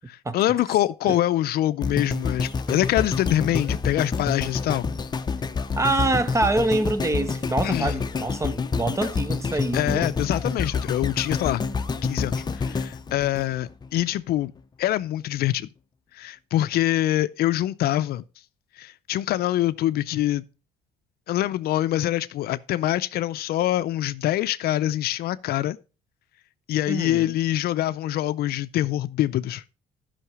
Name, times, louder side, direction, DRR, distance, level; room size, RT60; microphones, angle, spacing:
voice 1, 0.1-4.9 7.6-8.0 9.7-11.6 12.0-14.5 14.8-15.7 16.1-18.2 18.8-20.4 21.3-25.8 26.7-29.6, left 14 dB, 65° left, 0.5 m, -25 dB
sound 1, 1.8-14.0 14.6-14.7, left 4 dB, 25° left, 0.7 m, -28 dB
voice 2, 5.8-10.1 26.9-27.3, right 2 dB, 15° right, 0.8 m, -25 dB
11.0 x 5.8 x 4.7 m
cardioid pair, 110°, 17 cm